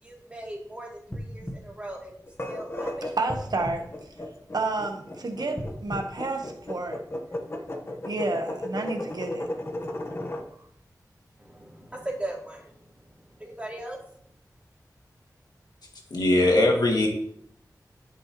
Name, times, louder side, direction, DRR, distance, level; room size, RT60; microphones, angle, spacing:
voice 1, 0.0-3.1 11.4-14.2, right 1 dB, 20° right, -3 dB, 2.7 m, -39 dB
sound 1, 1.1-2.7 3.2-4.8 5.5-7.2 7.7-7.8, equal, 15° left, 1.3 m, -40 dB
sound 2, 2.3-10.5, left 1 dB, 35° left, 1.1 m, -35 dB
voice 2, 3.2-3.9 4.5-7.0 8.1-9.5, right 3 dB, 80° right, 4 dB, 1.1 m, -30 dB
voice 3, 16.1-17.1, left 1 dB, 85° left, 0 dB, 1.8 m, -20 dB
12.5 x 5.5 x 3.0 m, 0.67 s
wide cardioid pair, 80°, 7 cm